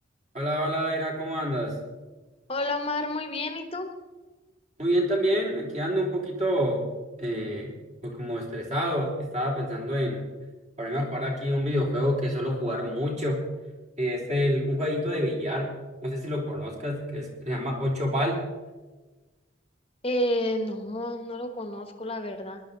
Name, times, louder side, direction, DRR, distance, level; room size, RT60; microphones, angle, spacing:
voice 1, 0.3-1.7 4.8-6.8 7.2-7.7 8.0-10.3 10.8-13.4 14.0-15.7 16.0-18.4, equal, 35° right, -2 dB, 3.4 m, -27 dB
voice 2, 2.5-3.9 20.0-22.6, left 1 dB, 30° left, 6 dB, 1.3 m, -30 dB
19.0 x 11.5 x 4.0 m, 1.2 s
head